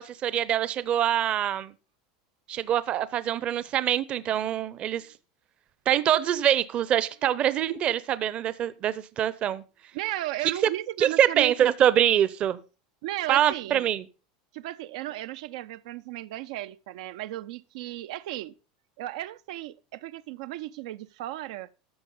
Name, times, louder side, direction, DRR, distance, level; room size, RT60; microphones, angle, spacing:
voice 1, 0.0-1.7 2.5-5.1 5.9-9.6 11.0-12.6 13.3-14.1, right 10 dB, 30° right, 0.7 m, -24 dB
voice 2, 9.9-11.7 13.0-13.9 14.5-18.5 19.0-21.7, right 15 dB, 70° right, 0.6 m, -35 dB
13.5 x 6.0 x 5.4 m
supercardioid pair, 155°, 4 cm